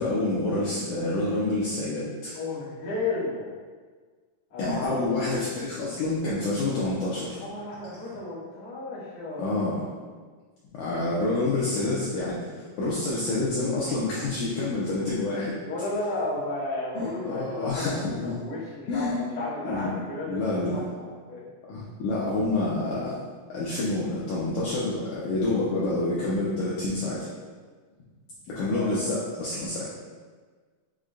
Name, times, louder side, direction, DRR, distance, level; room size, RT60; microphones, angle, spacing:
voice 1, 0.0-2.3 4.6-7.4 9.4-9.8 10.7-15.5 16.9-18.3 18.9-19.2 19.7-19.9 20.3-20.8 21.7-23.2 23.5-27.3 28.5-29.9, left 2 dB, 85° left, -7 dB, 1.8 m, -28 dB
voice 2, 2.3-3.5 4.5-5.4 7.4-9.6 11.5-12.1 15.6-20.8 21.1-21.5 28.7-29.1, left 2 dB, 55° left, -9 dB, 1.6 m, -33 dB
6.5 x 3.7 x 2.2 m, 1.5 s
omnidirectional pair, 4.4 m